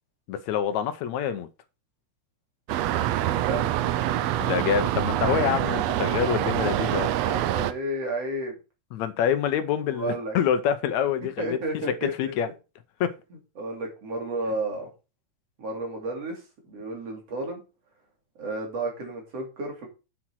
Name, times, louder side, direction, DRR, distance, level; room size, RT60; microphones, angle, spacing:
voice 1, 0.3-1.5 4.4-7.1 8.9-11.6 11.9-12.5 13.0-13.1, left 8 dB, 75° left, 2.1 m, -26 dB
sound 1, 2.7-7.7, right 12 dB, 75° right, 1.7 m, -25 dB
voice 2, 7.2-8.6 9.9-10.4 11.4-12.5 13.6-14.9 15.6-17.6 18.4-19.9, right 2 dB, 55° right, 3.9 m, -32 dB
7.8 x 7.4 x 4.7 m
omnidirectional pair, 3.3 m